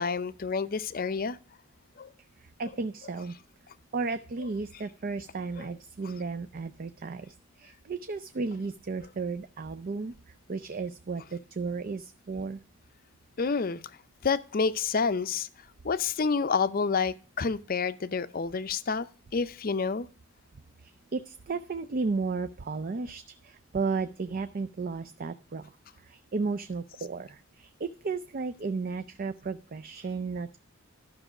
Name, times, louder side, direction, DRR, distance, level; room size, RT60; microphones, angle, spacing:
voice 1, 0.0-1.4 2.0-2.1 5.6-5.7 13.4-13.8 14.2-15.5 15.8-19.1 19.3-20.1, left 5 dB, 40° left, 0.5 m, -28 dB
voice 2, 2.4-3.3 3.9-12.6 20.8-30.6, right 4 dB, 40° right, 0.4 m, -34 dB
12.5 x 6.1 x 4.8 m
head